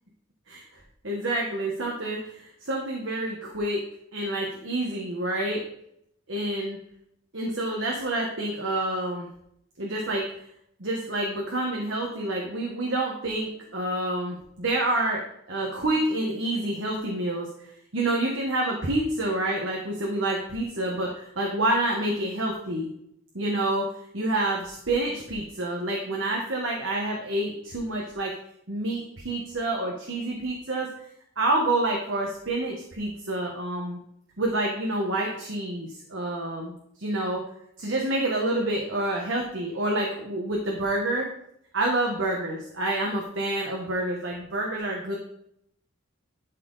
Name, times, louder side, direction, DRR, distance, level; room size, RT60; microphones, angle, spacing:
voice 1, 1.0-3.8 4.1-5.6 6.3-6.8 7.3-9.3 9.8-10.3 10.8-15.2 15.5-17.5 17.9-22.9 23.3-28.3 28.7-30.9 31.4-34.0 34.4-36.7 37.0-37.4 37.8-41.3 41.7-45.2, right 1 dB, 75° right, -1 dB, 1.3 m, -28 dB
11.5 x 4.3 x 4.0 m, 0.72 s
head